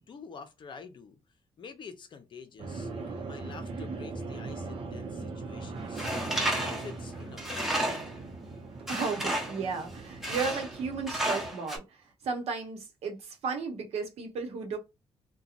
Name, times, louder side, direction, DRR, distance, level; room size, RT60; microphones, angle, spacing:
voice 1, 0.1-1.2 1.6-6.1 6.5-7.9, left 5 dB, 50° left, 0.6 m, -47 dB
sound 1, 2.6-11.5, right 3 dB, 60° right, 0.7 m, -40 dB
Tools, 6.0-8.2 8.9-9.6 10.2-10.8 11.1-11.8, right 1 dB, 5° right, 0.9 m, -32 dB
voice 2, 8.9-14.8, right 5 dB, 85° right, 0.9 m, -34 dB
2.8 x 2.2 x 2.4 m
cardioid pair, 115°, 10 cm